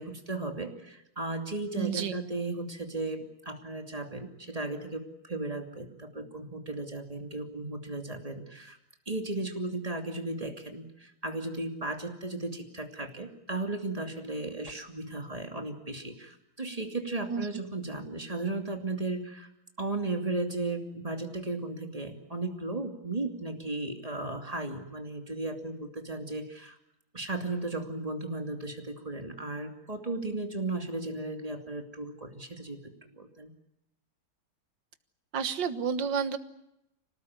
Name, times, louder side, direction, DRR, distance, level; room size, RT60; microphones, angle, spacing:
voice 1, 0.0-8.8 9.1-19.5 19.8-26.8 27.1-33.5, right 2 dB, 20° right, 4 dB, 2.7 m, -35 dB
voice 2, 1.7-2.1 17.3-17.5 35.3-36.4, right 6 dB, 65° right, 11 dB, 2.0 m, -30 dB
26.5 x 18.5 x 9.6 m, 0.86 s
omnidirectional pair, 2.2 m